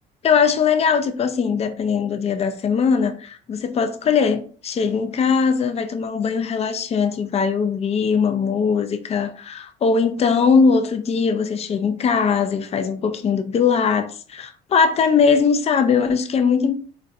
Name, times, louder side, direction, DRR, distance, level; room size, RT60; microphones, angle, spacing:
voice 1, 0.2-16.7, left 6 dB, 40° left, 0.4 m, -20 dB
4.0 x 2.1 x 2.4 m
cardioid pair, 110°, 17 cm